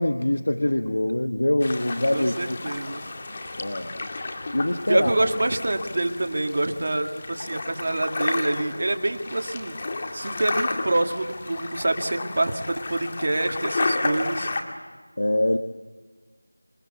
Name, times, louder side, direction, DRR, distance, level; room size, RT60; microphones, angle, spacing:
voice 1, 0.0-2.6 3.6-3.9 4.5-5.1 15.2-15.6, left 1 dB, 70° left, 8 dB, 1.3 m, -24 dB
sound 1, 1.6-14.6, left 2 dB, 25° left, 2.1 m, -32 dB
voice 2, 2.1-3.0 4.9-9.8 10.1-14.5, right 2 dB, 40° right, 5 dB, 1.9 m, -26 dB
28.0 x 18.5 x 8.3 m, 1.4 s
figure-of-eight pair, 175°, 0 cm